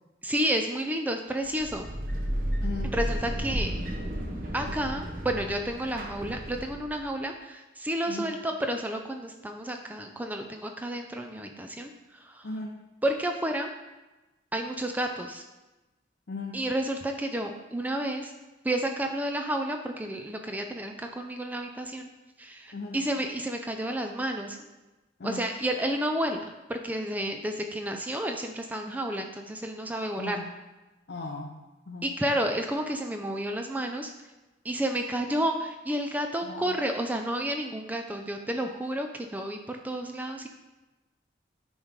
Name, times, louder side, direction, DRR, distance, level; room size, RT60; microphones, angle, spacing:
voice 1, 0.2-1.9 2.9-3.7 4.5-12.5 13.0-13.7 14.5-15.4 16.5-18.3 18.6-22.1 22.4-24.6 25.2-30.4 32.0-34.1 34.6-40.5, right 1 dB, 10° right, 4 dB, 0.4 m, -31 dB
sound 1, 1.4-7.0, equal, 50° right, 1.0 m, -33 dB
voice 2, 2.6-3.0 8.1-8.3 12.4-12.8 16.3-16.6 22.7-23.0 25.2-25.5 30.2-30.5 31.1-31.5 31.9-32.1 36.4-36.8, left 3 dB, 60° left, -1 dB, 0.6 m, -37 dB
9.1 x 3.1 x 5.1 m, 1.1 s
head